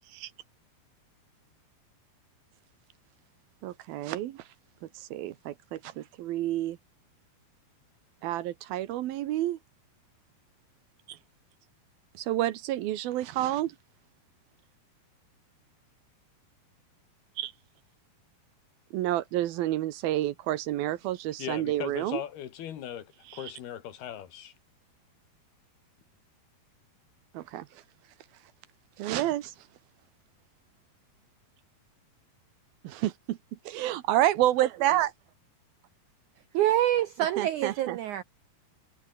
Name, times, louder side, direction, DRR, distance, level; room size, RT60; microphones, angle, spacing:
voice 1, 3.6-4.4 5.0-6.8 8.2-9.6 11.1-11.2 12.1-13.8 17.4-17.5 18.9-22.2 23.3-23.5 27.3-27.7 29.0-29.5 32.8-33.4 33.7-35.1 37.4-38.0, right 14 dB, 75° right, 2.8 m, -29 dB
voice 2, 21.4-24.5, left 10 dB, 75° left, 4.0 m, -39 dB
voice 3, 36.5-38.2, right 12 dB, 90° right, 1.7 m, -26 dB
omnidirectional pair, 4.6 m